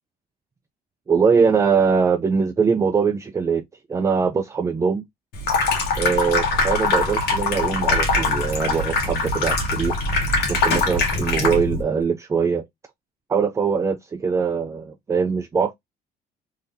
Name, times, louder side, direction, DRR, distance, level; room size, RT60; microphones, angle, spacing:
voice 1, 1.1-3.6 3.9-5.0 6.0-9.9 10.5-12.6 13.3-15.7, right 5 dB, 15° right, 0.3 m, -22 dB
Water tap faucet / Sink (filling or washing), 5.3-11.8, left 3 dB, 75° left, 1.2 m, -22 dB
3.5 x 2.7 x 2.6 m
cardioid pair, 110°, 17 cm